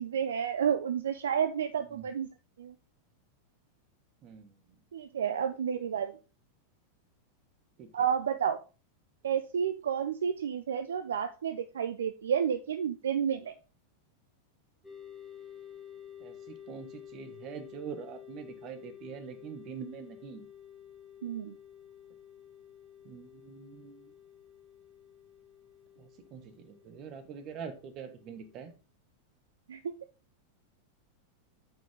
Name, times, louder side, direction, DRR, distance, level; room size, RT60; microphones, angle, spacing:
voice 1, 0.0-2.3 2.6-2.7 4.9-6.2 7.9-8.6 9.2-13.5 21.2-21.5 29.7-29.9, right 8 dB, 65° right, 11 dB, 0.5 m, -31 dB
voice 2, 4.2-4.6 7.8-8.1 16.2-20.5 23.0-24.1 26.0-28.7, right 7 dB, 35° right, 11 dB, 1.3 m, -44 dB
sound 1, 14.8-28.7, left 9 dB, ahead, 3.0 m, -51 dB
8.8 x 5.3 x 3.6 m, 0.34 s
figure-of-eight pair, 90°, 0 cm